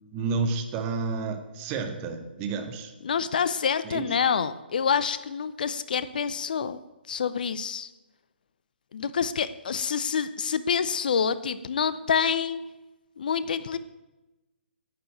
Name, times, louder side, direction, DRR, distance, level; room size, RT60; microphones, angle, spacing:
voice 1, 0.1-2.9 3.8-4.1, right 4 dB, 25° right, 6 dB, 1.7 m, -30 dB
voice 2, 3.0-6.8 7.1-7.9 8.9-12.6 13.2-13.8, left 6 dB, 50° left, 14 dB, 0.7 m, -27 dB
11.5 x 9.4 x 9.1 m, 1.1 s
figure-of-eight pair, 130°, 6 cm